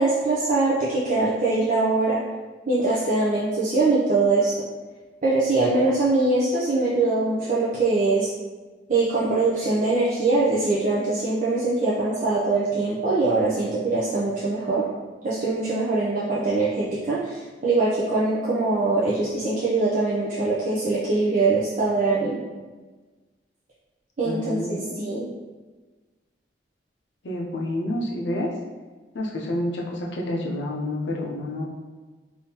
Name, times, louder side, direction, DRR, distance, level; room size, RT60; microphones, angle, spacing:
voice 1, 0.0-2.2 2.7-4.5 5.2-8.3 8.9-14.8 15.2-22.4 24.2-25.3, right 3 dB, 45° right, -7 dB, 0.5 m, -22 dB
voice 2, 24.2-25.2 27.2-28.5 29.1-31.6, left 1 dB, 75° left, -2 dB, 0.6 m, -29 dB
3.5 x 2.6 x 2.8 m, 1.3 s
head